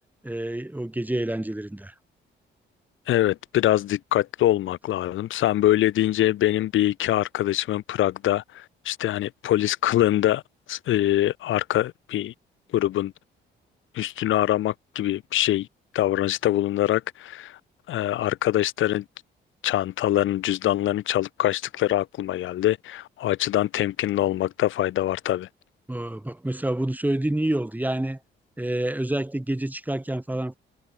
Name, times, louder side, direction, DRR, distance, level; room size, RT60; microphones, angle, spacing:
voice 1, 0.2-1.9 25.9-28.2 28.6-30.5, right 1 dB, 10° right, 4.9 m, -28 dB
voice 2, 3.1-10.4 10.7-12.3 12.7-13.1 13.9-15.7 15.9-17.6 17.9-19.0 19.6-25.5, left 13 dB, 80° left, 2.1 m, -24 dB
cardioid pair, 90°, 20 cm